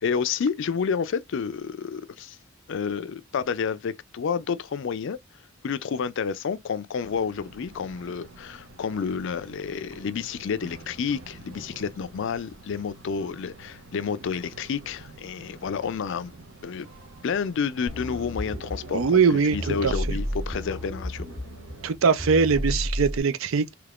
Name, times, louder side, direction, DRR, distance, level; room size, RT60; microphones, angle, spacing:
voice 1, 0.0-2.4 2.7-5.2 5.6-16.3 16.6-16.9 17.2-21.3, left 6 dB, 60° left, 0.4 m, -30 dB
sound 1, 7.0-22.0, right 2 dB, 90° right, 1.0 m, -47 dB
sound 2, 17.9-23.2, equal, 5° right, 0.6 m, -32 dB
voice 2, 18.9-20.2 21.8-23.7, right 5 dB, 70° right, 0.5 m, -22 dB
3.4 x 3.0 x 2.4 m
head